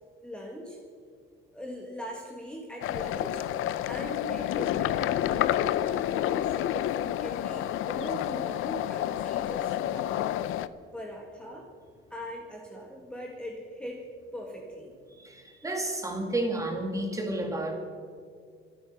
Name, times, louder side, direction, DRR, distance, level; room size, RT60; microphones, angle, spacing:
voice 1, 0.2-0.8 1.5-3.4 3.8-10.3 10.9-11.7 12.1-14.0 14.3-14.9, equal, 5° left, -1 dB, 1.7 m, -40 dB
sound 1, 2.8-10.7, left 12 dB, 75° left, 0.6 m, -29 dB
voice 2, 15.1-17.7, right 1 dB, 15° right, 3 dB, 2.3 m, -31 dB
26.0 x 9.0 x 5.9 m, 2.2 s
cardioid pair, 160°, 21 cm